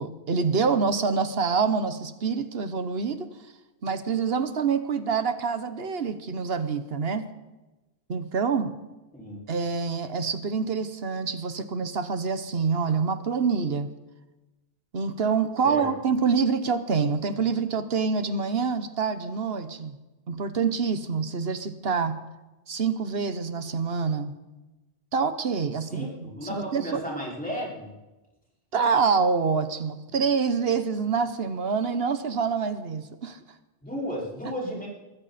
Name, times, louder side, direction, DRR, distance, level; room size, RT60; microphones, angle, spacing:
voice 1, 0.0-3.3 3.8-7.3 8.1-8.7 9.5-13.9 14.9-19.9 20.3-22.2 22.7-24.3 25.1-27.0 28.7-33.4, right 5 dB, 75° right, 11 dB, 1.3 m, -26 dB
voice 2, 25.9-27.9 33.8-34.9, equal, 10° left, -5 dB, 5.3 m, -34 dB
21.5 x 15.0 x 4.2 m, 1.1 s
omnidirectional pair, 1.0 m